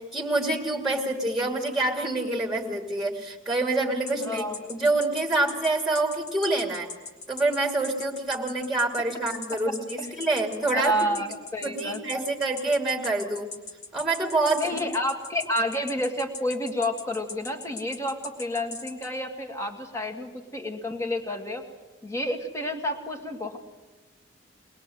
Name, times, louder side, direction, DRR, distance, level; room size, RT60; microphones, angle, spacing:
voice 1, 0.0-4.4 4.7-6.9 7.3-11.3 11.6-13.5 13.9-14.8, right 2 dB, ahead, 1 dB, 2.3 m, -26 dB
sound 1, 4.1-19.1, left 4 dB, 55° left, 2.1 m, -39 dB
voice 2, 4.2-4.7 10.0-10.1 10.7-12.3 14.6-21.6 22.0-23.6, equal, 15° left, 3 dB, 2.1 m, -30 dB
22.5 x 21.0 x 7.7 m, 1.1 s
head